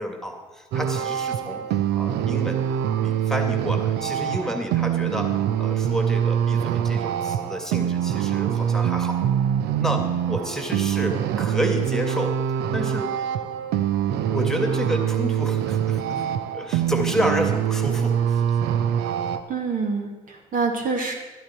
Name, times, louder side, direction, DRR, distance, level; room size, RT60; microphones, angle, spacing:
voice 1, 0.0-1.6 2.0-2.7 3.0-9.2 9.8-12.4 12.7-13.1 14.3-16.2 16.5-18.6, equal, ahead, 4 dB, 2.1 m, -30 dB
sound 1, 0.7-19.4, right 9 dB, 65° right, 0.8 m, -24 dB
voice 2, 19.5-21.1, right 4 dB, 50° right, 2 dB, 2.1 m, -26 dB
13.5 x 12.5 x 4.4 m, 1.2 s
hypercardioid pair, 50°, 19 cm